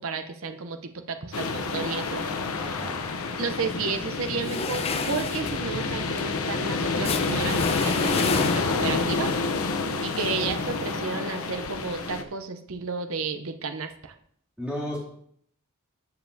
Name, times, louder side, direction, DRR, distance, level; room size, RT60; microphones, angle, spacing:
voice 1, 0.0-2.2 3.4-9.3 10.0-14.1, right 4 dB, 70° right, 8 dB, 0.7 m, -32 dB
sound 1, 1.3-12.2, left 3 dB, 75° left, 0.7 m, -28 dB
voice 2, 2.6-3.0 14.6-15.0, equal, 5° right, -6 dB, 2.6 m, -33 dB
sound 2, 4.4-9.0, left 4 dB, 25° left, 0.5 m, -31 dB
13.5 x 7.0 x 2.7 m, 0.66 s
head